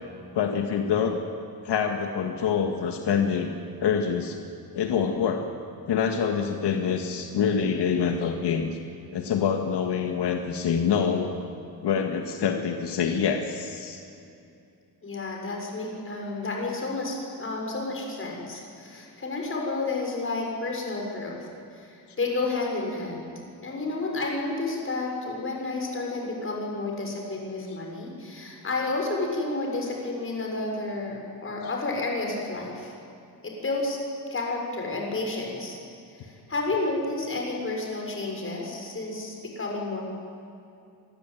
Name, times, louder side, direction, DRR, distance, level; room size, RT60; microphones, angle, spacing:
voice 1, 0.3-1.2 1.6-3.6 3.8-4.4 4.7-5.5 5.9-8.8 9.1-11.3 11.8-14.0, left 7 dB, 85° left, 4 dB, 2.0 m, -26 dB
voice 2, 15.0-21.4 21.7-23.3 23.6-32.9 33.4-34.0 34.3-35.8 36.2-40.0, left 3 dB, 30° left, 0 dB, 6.6 m, -31 dB
26.0 x 20.5 x 9.3 m, 2.6 s
wide cardioid pair, 145°, 40 cm